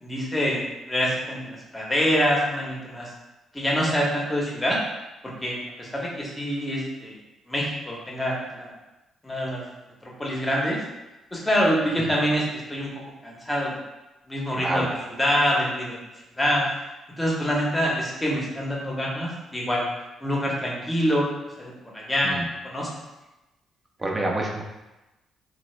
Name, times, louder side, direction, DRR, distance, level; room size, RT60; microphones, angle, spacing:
voice 1, 0.0-3.1 3.5-4.8 5.4-7.2 7.5-8.7 9.2-9.6 10.0-10.8 11.3-12.4 12.7-12.9 13.2-13.7 14.3-14.9 15.2-16.0 16.4-16.6 17.2-19.8 20.2-21.3 21.6-22.3 22.6-22.9, equal, 15° left, -3 dB, 0.8 m, -25 dB
voice 2, 14.5-15.0 22.2-22.5 24.0-24.6, right 1 dB, 20° right, 0 dB, 0.6 m, -27 dB
3.3 x 2.0 x 3.1 m, 1.0 s
cardioid pair, 90°, 0 cm